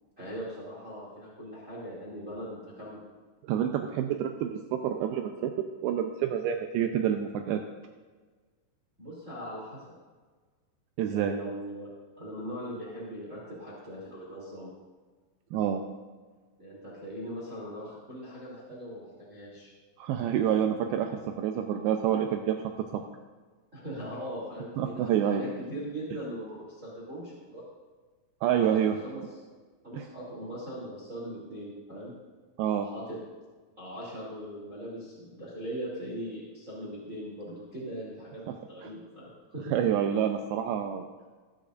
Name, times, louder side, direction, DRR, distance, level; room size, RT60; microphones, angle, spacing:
voice 1, 0.2-3.0 9.0-9.8 11.1-11.9 12.2-14.7 16.6-19.7 21.5-21.6 23.7-27.6 28.5-28.7 29.0-29.2 29.8-32.1 32.8-33.2 33.8-39.7, equal, 20° right, -6 dB, 2.8 m, -40 dB
voice 2, 3.4-7.6 11.0-11.4 15.5-15.8 20.0-22.6 22.9-23.0 24.8-25.4 28.4-29.0 29.9-30.0 32.6-32.9 38.8-38.9 39.7-41.1, right 9 dB, 80° right, 4 dB, 2.6 m, -28 dB
21.5 x 10.0 x 2.5 m, 1.4 s
omnidirectional pair, 4.5 m